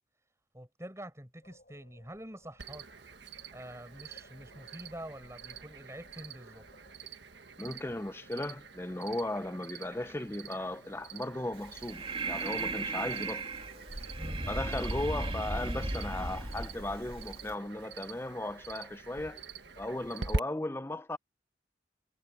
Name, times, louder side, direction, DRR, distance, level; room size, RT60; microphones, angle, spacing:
voice 1, 0.5-2.9 3.5-6.7 14.1-14.6, right 1 dB, 15° right, 6.0 m, -46 dB
sound 1, 1.4-20.5, left 1 dB, 50° left, 7.4 m, -60 dB
Cricket, 2.6-20.4, right 3 dB, 75° right, 1.5 m, -45 dB
voice 2, 7.6-13.5 14.5-19.4 19.8-21.2, left 1 dB, 15° left, 0.6 m, -36 dB
Breathing, 11.6-17.5, right 2 dB, 30° right, 2.9 m, -36 dB
head